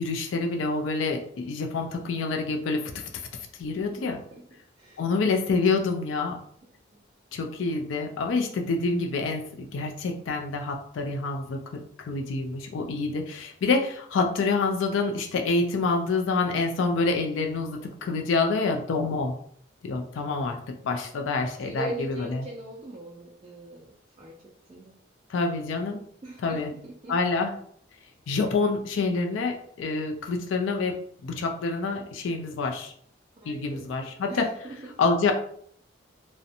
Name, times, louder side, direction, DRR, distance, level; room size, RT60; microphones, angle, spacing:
voice 1, 0.0-3.0 3.6-4.2 5.0-6.4 7.3-19.4 19.8-20.6 20.8-21.9 22.2-22.4 25.3-26.0 26.4-26.7 27.1-27.5 28.3-31.0 31.2-32.9 33.5-34.5 35.0-35.3, left 3 dB, 85° left, 4 dB, 0.4 m, -27 dB
voice 2, 21.4-25.0 26.2-27.1 33.4-35.0, right 2 dB, 30° right, -3 dB, 0.3 m, -41 dB
2.5 x 2.1 x 2.7 m, 0.62 s
head